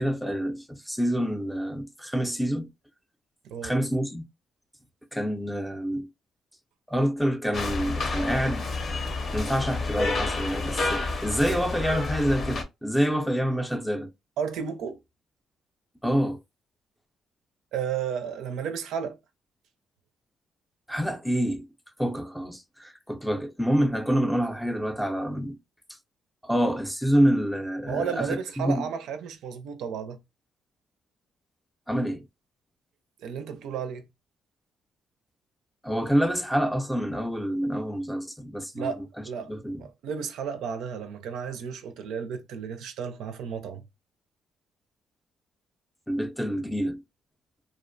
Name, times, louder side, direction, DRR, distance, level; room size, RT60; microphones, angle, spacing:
voice 1, 0.0-2.7 3.6-4.2 5.1-6.1 6.9-8.7 9.3-14.1 16.0-16.4 20.9-21.7 22.0-25.6 26.4-28.9 31.9-32.2 35.8-38.9 39.5-39.8 46.1-47.0, equal, ahead, 0.4 m, -27 dB
sound 1, 7.5-12.6, left 3 dB, 55° left, 0.7 m, -29 dB
voice 2, 14.4-15.0 17.7-19.2 27.9-30.2 33.2-34.0 38.7-39.5 39.8-43.8, right 7 dB, 85° right, 0.4 m, -33 dB
2.5 x 2.1 x 2.5 m
cardioid pair, 90°, 0 cm